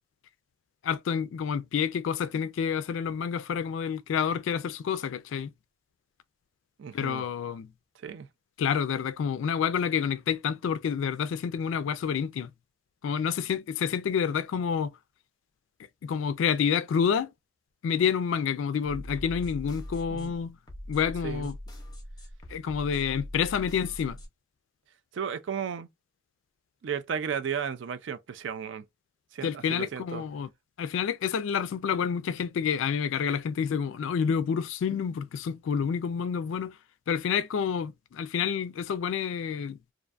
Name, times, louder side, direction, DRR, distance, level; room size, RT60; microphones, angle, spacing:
voice 1, 0.8-5.5 6.9-7.7 8.6-12.5 13.0-14.9 16.0-17.3 17.8-20.6 20.9-21.6 22.5-24.2 29.4-30.5 30.8-36.8 37.1-39.8, left 7 dB, 75° left, 0.3 m, -28 dB
voice 2, 6.8-7.2 8.0-8.3 20.1-20.3 21.2-21.5 25.1-25.9 26.8-28.8 29.3-30.2, right 7 dB, 65° right, 0.3 m, -34 dB
sound 1, 18.8-24.3, equal, 20° left, 0.6 m, -41 dB
2.5 x 2.3 x 2.4 m
head